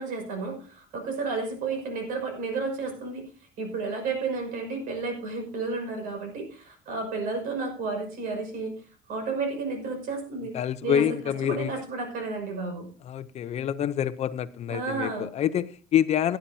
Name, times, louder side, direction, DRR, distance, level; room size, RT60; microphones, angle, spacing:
voice 1, 0.0-3.3 3.6-10.6 10.8-12.9 14.7-15.3, right 4 dB, 75° right, 6.0 m, -32 dB
voice 2, 10.5-11.7 13.1-16.4, left 9 dB, 50° left, 0.7 m, -27 dB
18.0 x 10.5 x 2.8 m
cardioid pair, 115°, 15 cm